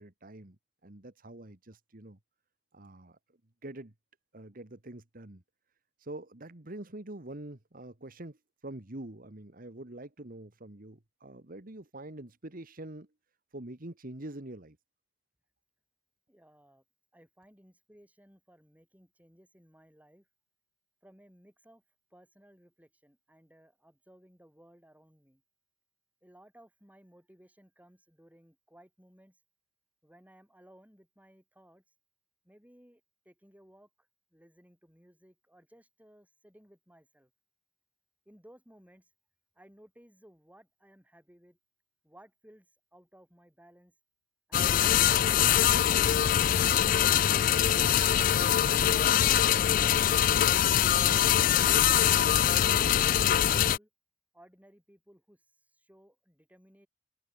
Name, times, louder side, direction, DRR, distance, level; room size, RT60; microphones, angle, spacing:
voice 1, 0.0-2.2 2.7-3.2 3.6-3.9 4.3-5.4 6.0-13.1 13.5-14.8, right 1 dB, 50° right, 1.8 m, -45 dB
voice 2, 16.3-16.8 17.1-20.3 21.0-21.8 22.1-25.4 26.2-29.4 30.0-31.8 32.4-33.9 34.3-37.3 38.3-39.1 39.6-41.6 42.0-42.7 42.9-43.9 44.5-46.1 47.1-48.4 48.7-50.2 51.2-53.9 54.3-55.4 55.7-56.9, right 1 dB, 10° right, 6.0 m, -59 dB
sound 1, 44.5-53.8, left 10 dB, 45° left, 0.3 m, -23 dB
head